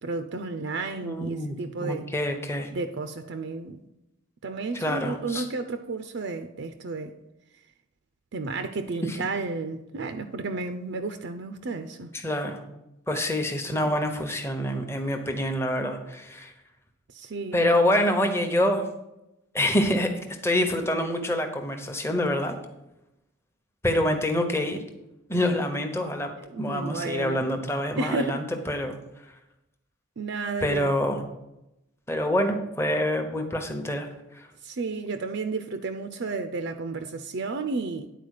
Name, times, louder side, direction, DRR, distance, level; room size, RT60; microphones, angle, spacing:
voice 1, 0.0-2.1 2.7-3.8 4.4-7.1 8.3-12.1 13.7-14.0 17.1-17.8 26.4-27.5 28.0-28.5 30.2-30.9 34.6-38.1, right 3 dB, 55° right, 0.5 m, -32 dB
voice 2, 1.0-2.7 4.7-5.4 9.0-9.2 12.2-12.6 13.1-16.5 17.5-18.8 19.5-20.1 20.4-22.6 23.8-24.8 25.3-26.3 26.6-29.0 30.6-31.2 32.1-34.1 34.3-34.5, left 1 dB, 10° left, 0.8 m, -26 dB
10.0 x 4.4 x 6.5 m
head